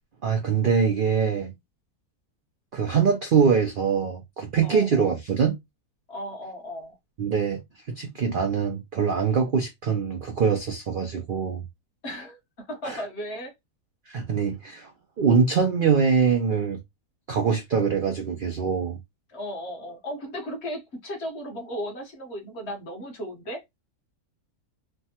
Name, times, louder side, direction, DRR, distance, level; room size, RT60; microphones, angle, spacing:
voice 1, 0.2-1.5 2.7-5.6 7.2-7.6 8.0-11.6 12.8-13.1 14.1-14.9 15.2-16.8 17.3-19.0, right 6 dB, 65° right, 0.5 m, -23 dB
voice 2, 4.6-5.0 6.1-7.0 12.0-12.4 12.7-13.5 19.3-23.6, equal, 50° left, 1.0 m, -35 dB
3.2 x 2.1 x 2.7 m
omnidirectional pair, 1.6 m